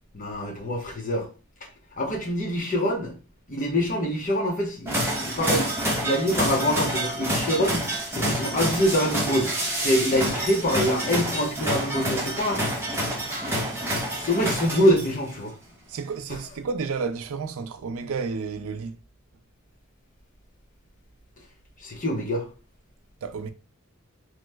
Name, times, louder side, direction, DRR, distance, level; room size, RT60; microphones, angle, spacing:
voice 1, 0.1-1.3 2.0-3.1 3.5-5.7 6.0-9.5 9.8-12.6 14.2-15.5 21.8-22.4, equal, 40° left, 0.7 m, -25 dB
sound 1, 4.9-15.3, right 1 dB, 10° right, 0.7 m, -28 dB
voice 2, 15.9-19.0 23.2-23.5, right 5 dB, 75° right, 0.4 m, -31 dB
3.0 x 2.1 x 3.3 m
head